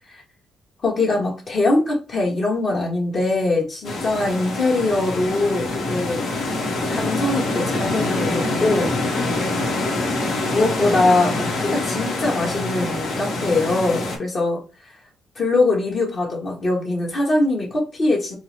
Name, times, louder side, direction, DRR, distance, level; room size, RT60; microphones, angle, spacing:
voice 1, 0.8-6.5 6.9-8.9 10.5-14.6 15.3-18.4, left 2 dB, 45° left, -1 dB, 1.3 m, -22 dB
sound 1, 3.8-14.2, left 2 dB, 70° left, 1.2 m, -25 dB
4.4 x 2.1 x 3.2 m, 0.33 s
cardioid pair, 90°, 0 cm